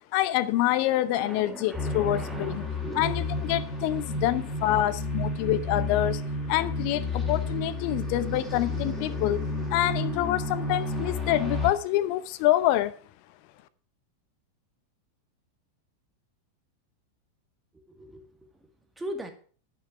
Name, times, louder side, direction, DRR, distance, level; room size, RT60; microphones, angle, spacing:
voice 1, 0.1-2.6 2.9-6.2 6.5-9.4 9.7-12.9, left 14 dB, 45° left, 0.7 m, -26 dB
voice 2, 1.1-3.0 17.9-18.3 19.0-19.3, right 1 dB, 10° right, 1.9 m, -39 dB
sound 1, 1.7-11.7, left 2 dB, 5° left, 3.0 m, -31 dB
11.0 x 6.3 x 5.8 m
figure-of-eight pair, 90°, 0 cm